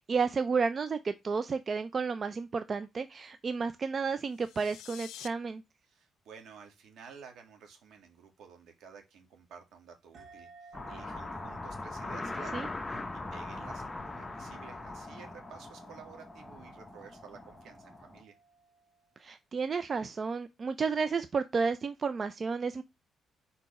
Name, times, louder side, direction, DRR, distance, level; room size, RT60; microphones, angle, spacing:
voice 1, 0.0-5.6 12.5-12.7 19.2-22.8, right 5 dB, 40° right, 0.5 m, -32 dB
sound 1, 4.2-5.3, left 13 dB, 90° left, 0.4 m, -48 dB
voice 2, 5.9-18.4, right 6 dB, 75° right, 2.0 m, -52 dB
sound 2, 10.1-19.2, right 3 dB, 60° right, 1.2 m, -56 dB
sound 3, 10.7-18.2, left 2 dB, 20° left, 0.8 m, -41 dB
4.6 x 4.0 x 5.4 m
cardioid pair, 90°, 0 cm